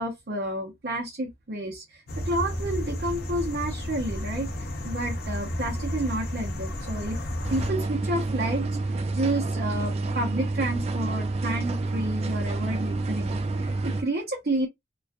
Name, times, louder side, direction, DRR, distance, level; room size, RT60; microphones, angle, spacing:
voice 1, 0.0-7.2 7.5-14.7, right 1 dB, 55° right, 0.7 m, -30 dB
sound 1, 2.1-7.7, equal, 55° left, 0.6 m, -32 dB
sound 2, 7.4-14.0, right 2 dB, 35° right, 0.3 m, -28 dB
2.5 x 2.4 x 2.2 m
head